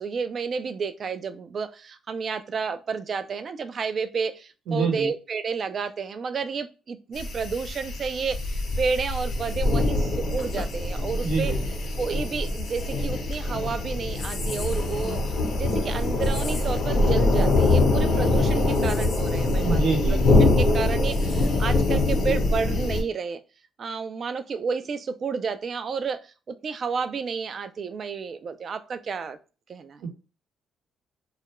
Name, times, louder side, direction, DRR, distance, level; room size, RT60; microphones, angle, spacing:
voice 1, 0.0-11.5 12.0-20.0 20.4-23.4 23.8-29.4 29.7-30.0, right 5 dB, 50° right, 11 dB, 0.3 m, -31 dB
voice 2, 4.7-5.1 11.2-11.6 18.2-18.3 19.6-20.2 30.0-30.1, right 3 dB, 80° right, 1 dB, 0.8 m, -26 dB
sound 1, 7.2-23.0, left 2 dB, 65° left, 0.7 m, -24 dB
2.3 x 2.1 x 2.9 m, 0.33 s
cardioid pair, 90°, 0 cm